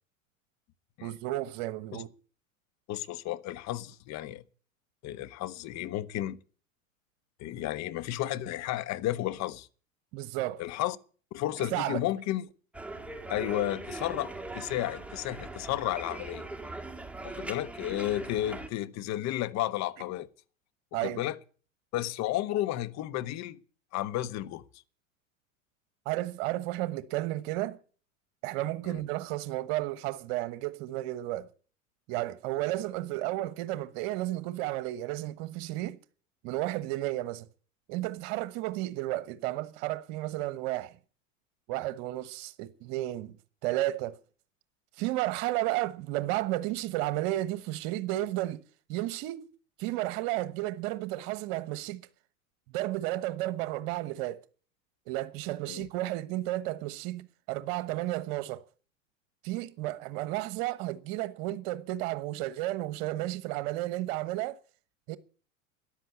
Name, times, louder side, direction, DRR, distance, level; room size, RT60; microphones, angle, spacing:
voice 1, 1.0-2.1 10.1-10.6 11.6-12.0 20.9-21.2 26.0-27.8 28.4-31.5 32.1-36.0 36.4-37.5 37.9-41.0 41.7-43.4 43.6-44.2 44.9-48.6 48.9-49.5 49.8-52.1 52.7-54.4 55.1-58.6 59.4-64.6 65.1-65.2, right 16 dB, 55° right, 1.2 m, -32 dB
voice 2, 2.9-4.4 5.0-6.4 7.4-9.7 10.6-11.0 11.3-12.4 13.3-16.5 17.2-20.3 21.0-21.4 21.9-23.6 23.9-24.6 28.8-29.0 55.7-55.9, left 14 dB, 45° left, 1.3 m, -32 dB
sound 1, 12.7-18.7, right 2 dB, 5° right, 2.1 m, -40 dB
13.5 x 10.5 x 8.5 m
hypercardioid pair, 85°, 39 cm